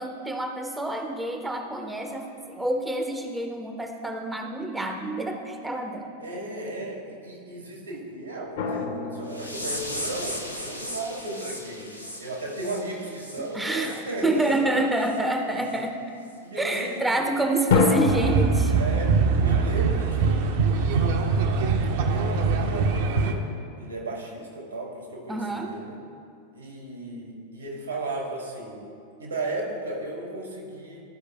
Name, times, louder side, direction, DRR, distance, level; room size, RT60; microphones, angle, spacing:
voice 1, 0.0-6.1 13.4-16.0 16.6-18.7 25.3-25.7, right 1 dB, 5° right, 4 dB, 0.5 m, -28 dB
voice 2, 6.2-11.9 12.2-14.5 16.4-17.2 18.8-20.6 20.9-21.4 22.1-23.4 23.8-26.0 26.5-28.8 29.2-31.0, right 2 dB, 80° right, -1 dB, 1.6 m, -35 dB
sound 1, 8.6-10.6 17.7-18.4, left 4 dB, 60° left, 0.8 m, -25 dB
sound 2, 9.3-14.0 14.4-14.6 15.0-15.2 15.7-15.8 16.3-16.4, left 1 dB, 90° left, 0.7 m, -37 dB
sound 3, 18.1-23.3, right 5 dB, 50° right, 0.6 m, -23 dB
12.5 x 4.9 x 3.1 m, 2.4 s
figure-of-eight pair, 90°, 0 cm